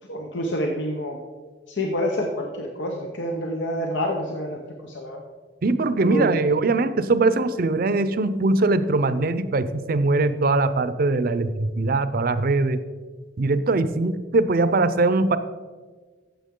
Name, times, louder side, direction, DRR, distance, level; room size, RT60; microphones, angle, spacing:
voice 1, 0.1-1.2 1.7-5.2 6.0-6.3, equal, 90° left, 1 dB, 1.0 m, -27 dB
voice 2, 5.6-12.8 13.4-15.4, right 2 dB, 55° right, 13 dB, 0.6 m, -21 dB
14.5 x 7.1 x 3.8 m, 1.4 s
head